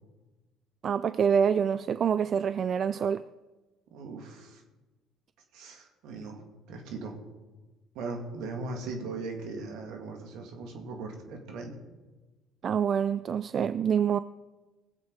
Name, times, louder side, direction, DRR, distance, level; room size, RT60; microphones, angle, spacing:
voice 1, 0.8-3.2 12.6-14.2, right 7 dB, 50° right, 0.3 m, -26 dB
voice 2, 3.9-4.6 5.5-6.4 6.7-7.2 7.9-11.8, right 3 dB, 75° right, 2.5 m, -39 dB
19.0 x 7.8 x 4.9 m
supercardioid pair, 70°, 0 cm